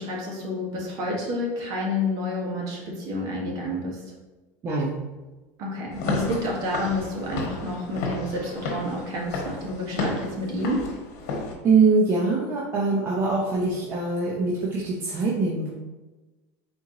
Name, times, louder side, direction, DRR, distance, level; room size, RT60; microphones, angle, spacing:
voice 1, 0.0-4.1 5.6-10.9, left 1 dB, 45° right, -2 dB, 1.3 m, -29 dB
voice 2, 4.6-5.0 11.6-15.7, right 4 dB, 25° right, -5 dB, 0.7 m, -23 dB
Walk footsteps / Siren, 5.9-11.5, left 3 dB, 75° left, 1.1 m, -32 dB
4.4 x 2.9 x 3.7 m, 1.2 s
supercardioid pair, 140°, 9 cm